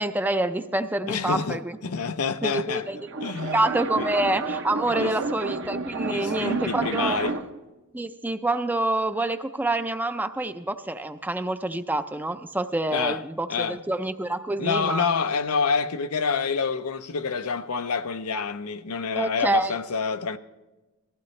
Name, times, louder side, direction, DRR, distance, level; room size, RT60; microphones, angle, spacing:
voice 1, 0.0-1.8 2.4-3.0 3.5-7.2 7.9-15.0 19.2-19.8, right 2 dB, 10° right, 0.5 m, -27 dB
voice 2, 1.1-2.9 3.2-3.6 4.0-4.1 4.9-5.1 6.1-7.4 12.9-13.2 13.5-13.8 14.6-20.4, left 5 dB, 85° left, 0.7 m, -27 dB
sound 1, 2.9-7.6, right 3 dB, 55° right, 0.8 m, -31 dB
20.0 x 15.0 x 3.2 m
head